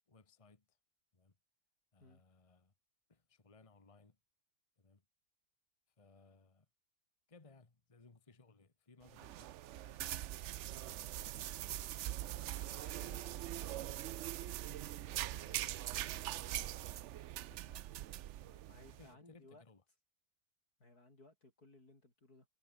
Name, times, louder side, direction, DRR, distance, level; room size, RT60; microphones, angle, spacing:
voice 1, 0.1-0.8 1.1-1.4 1.9-2.7 3.1-4.2 4.8-5.0 6.0-6.7 7.3-10.2 10.7-12.3 12.6-13.8 14.4-17.0 17.4-18.1 18.9-19.8, left 3 dB, 20° left, 1.6 m, -64 dB
sound 1, 9.0-19.0, right 13 dB, 65° right, 0.7 m, -42 dB
voice 2, 12.7-13.3 18.4-19.6 20.8-22.5, left 2 dB, 85° left, 7.4 m, -62 dB
omnidirectional pair, 1.6 m